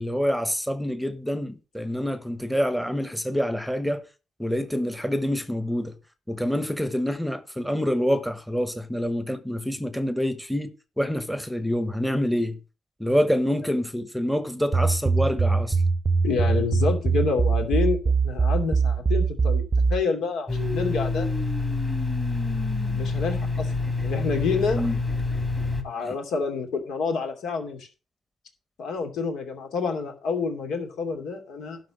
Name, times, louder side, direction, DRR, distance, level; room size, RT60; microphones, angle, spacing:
voice 1, 0.0-4.0 4.4-5.9 6.3-12.6 13.0-15.8 24.7-25.0 26.0-26.1, equal, ahead, 1.1 m, -26 dB
sound 1, 14.7-20.0, right 4 dB, 25° right, 0.7 m, -22 dB
voice 2, 16.2-19.6 19.9-21.3 22.9-23.7 24.0-24.8 25.8-27.9 28.8-31.8, left 5 dB, 75° left, 2.8 m, -28 dB
Domestic sounds home sounds, 20.5-25.8, left 3 dB, 15° left, 2.1 m, -27 dB
12.0 x 4.2 x 7.2 m
cardioid pair, 90°, 0 cm